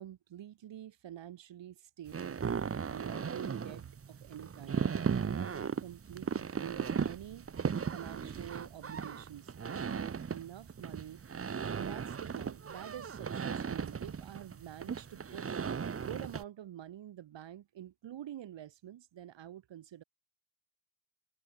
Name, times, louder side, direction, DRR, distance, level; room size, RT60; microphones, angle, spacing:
voice 1, 0.0-2.4 2.9-4.9 5.2-7.5 7.9-11.2 11.7-15.5 15.9-20.0, right 11 dB, 70° right, 4.2 m, -47 dB
sound 1, 2.1-16.4, right 6 dB, 30° right, 1.7 m, -37 dB
wide cardioid pair, 180°, 46 cm